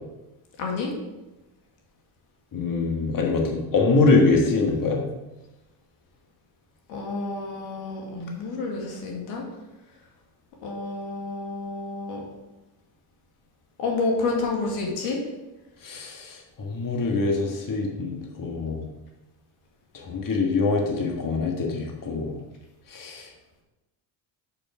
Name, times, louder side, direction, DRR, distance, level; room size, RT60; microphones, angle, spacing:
voice 1, 0.6-0.9 6.9-9.4 10.6-12.2 13.8-15.2, left 3 dB, 90° left, 0 dB, 2.1 m, -29 dB
voice 2, 2.5-5.0 15.8-18.9 19.9-22.4 22.9-23.3, left 3 dB, 40° left, 0 dB, 1.7 m, -24 dB
6.6 x 6.0 x 4.9 m, 1.0 s
supercardioid pair, 90°, 50 cm